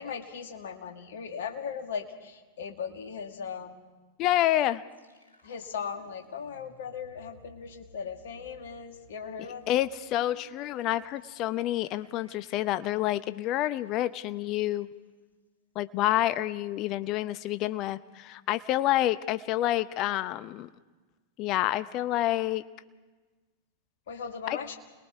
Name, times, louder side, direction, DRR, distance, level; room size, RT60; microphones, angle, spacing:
voice 1, 0.0-3.8 5.4-9.8 24.1-24.8, left 6 dB, 60° left, 5 dB, 2.0 m, -38 dB
voice 2, 4.2-4.8 9.7-14.9 15.7-20.7 21.4-22.6 24.5-24.6, left 14 dB, 40° left, 14 dB, 0.7 m, -28 dB
sound 1, 4.9-14.7, left 2 dB, 80° left, 3.0 m, -59 dB
28.5 x 21.0 x 4.8 m, 1.3 s
figure-of-eight pair, 90°, 0 cm